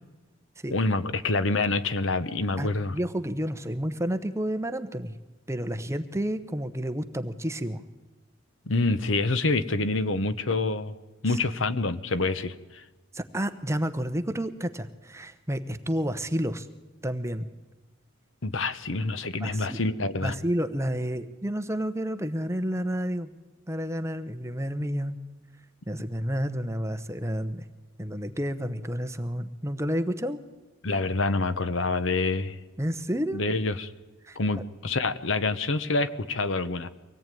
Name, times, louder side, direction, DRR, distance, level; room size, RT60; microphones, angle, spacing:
voice 1, 0.7-3.0 8.7-10.9 11.2-12.5 18.4-20.3 30.8-32.6 33.3-33.9 34.4-36.9, left 3 dB, 70° left, 13 dB, 1.1 m, -26 dB
voice 2, 2.6-5.2 5.5-7.8 11.3-11.4 13.1-16.7 17.0-17.5 19.4-19.8 20.2-23.3 23.7-25.2 25.9-27.6 28.0-30.4 32.8-33.4 34.2-34.4, equal, 15° right, 9 dB, 1.0 m, -30 dB
24.5 x 17.5 x 9.2 m, 1.2 s
head